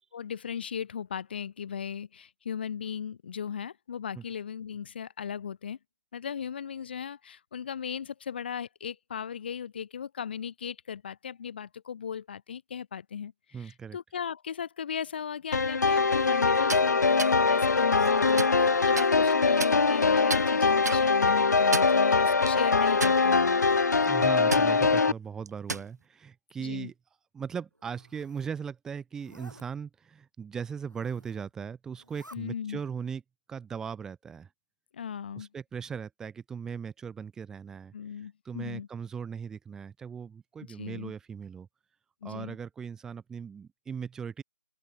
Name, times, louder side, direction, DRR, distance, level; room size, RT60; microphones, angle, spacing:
voice 1, 0.1-5.8 6.1-13.3 13.6-23.6 26.6-26.9 32.3-32.8 34.9-35.5 37.9-38.9 40.7-41.1 42.2-42.6, left 7 dB, 35° left, 0.9 m, -37 dB
voice 2, 13.5-14.0 24.0-26.9 27.3-33.2 33.5-34.5 35.4-37.9 38.4-41.7 42.2-44.4, right 6 dB, 5° right, 2.8 m, -38 dB
sound 1, 15.5-25.1, left 4 dB, 65° left, 0.4 m, -23 dB
sound 2, 16.5-16.8 17.2-17.3 17.9-18.6 19.0-19.1 19.6-20.0 20.3-20.4 20.8-21.0 21.6-22.0 22.5-22.6 23.0-23.5 23.9-24.1 24.5-24.7 25.5-25.9, right 3 dB, 60° right, 1.5 m, -32 dB
Zipper (clothing), 27.7-28.5 29.1-29.7 30.8-31.5 31.9-32.4, right 1 dB, 85° right, 5.8 m, -54 dB
open air
figure-of-eight pair, 150°, 10 cm